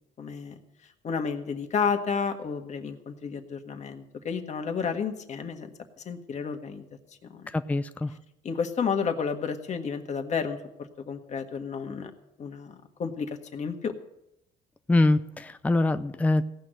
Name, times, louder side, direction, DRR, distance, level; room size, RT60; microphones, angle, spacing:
voice 1, 0.2-0.6 1.0-5.7 6.0-6.8 7.2-7.5 8.4-12.1 12.4-13.9, left 6 dB, 45° left, 6 dB, 1.6 m, -31 dB
voice 2, 7.5-8.1 14.9-16.4, left 2 dB, 10° left, 11 dB, 0.5 m, -24 dB
17.0 x 6.3 x 9.0 m, 0.86 s
cardioid pair, 110°, 17 cm